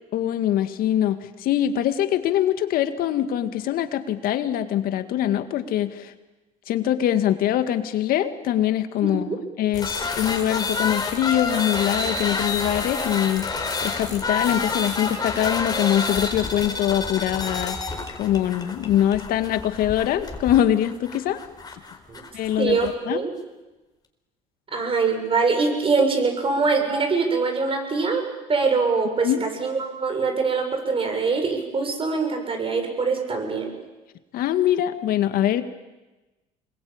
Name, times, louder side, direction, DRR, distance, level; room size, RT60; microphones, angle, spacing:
voice 1, 0.1-6.1 6.7-17.9 18.2-21.4 22.3-23.2 29.2-29.4 34.3-35.7, left 11 dB, 65° left, 9 dB, 2.1 m, -23 dB
voice 2, 9.0-9.4 22.1-22.2 22.6-23.3 24.7-28.2 28.5-33.7, right 4 dB, 35° right, 4 dB, 7.2 m, -23 dB
sound 1, 9.7-22.9, left 4 dB, 25° left, 4.2 m, -29 dB
26.0 x 22.0 x 8.9 m, 1.1 s
supercardioid pair, 85°, 16 cm